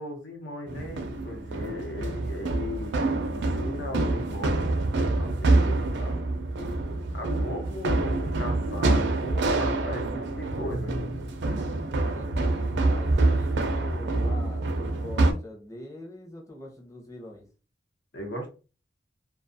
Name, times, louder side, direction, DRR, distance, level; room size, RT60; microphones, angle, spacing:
voice 1, 0.0-3.0 3.3-4.6 5.2-6.2 7.1-11.0 18.1-18.5, left 1 dB, 85° left, 3 dB, 0.9 m, -37 dB
sound 1, 0.7-15.3, right 2 dB, 70° right, 0.4 m, -26 dB
voice 2, 12.1-17.5, left 1 dB, 20° left, 1 dB, 0.6 m, -43 dB
2.3 x 2.3 x 2.6 m, 0.33 s
head